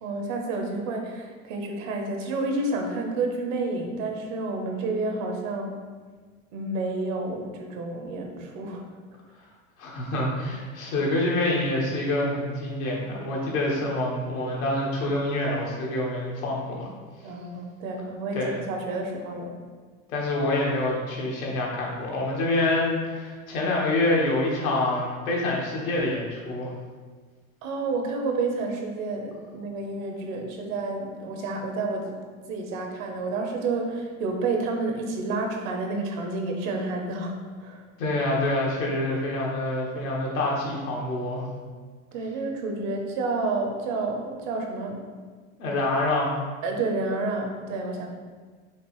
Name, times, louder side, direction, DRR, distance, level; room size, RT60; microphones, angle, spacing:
voice 1, 0.0-5.8 6.5-8.8 17.2-19.5 27.6-32.2 32.5-37.3 37.6-37.8 42.1-45.0 46.6-48.1, right 3 dB, 75° right, 2 dB, 1.0 m, -30 dB
voice 2, 9.8-16.9 18.3-18.7 20.1-26.7 38.0-41.5 45.6-46.3, left 2 dB, 90° left, -3 dB, 1.4 m, -26 dB
5.1 x 2.9 x 3.1 m, 1.5 s
supercardioid pair, 115°, 40 cm